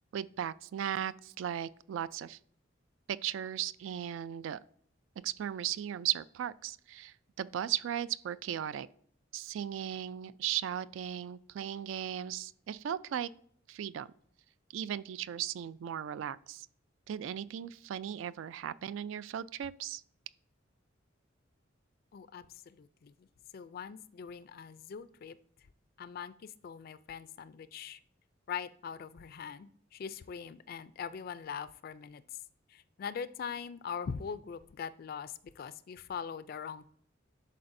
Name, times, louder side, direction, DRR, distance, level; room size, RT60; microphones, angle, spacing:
voice 1, 0.1-2.4 3.1-4.6 5.2-8.9 9.3-13.3 13.7-14.1 14.7-16.7 17.1-20.0, right 10 dB, 75° right, 0.3 m, -37 dB
voice 2, 22.1-23.3 23.5-25.4 26.0-28.0 28.5-32.2 32.7-36.9, left 7 dB, 50° left, 0.3 m, -42 dB
11.0 x 4.2 x 2.6 m
head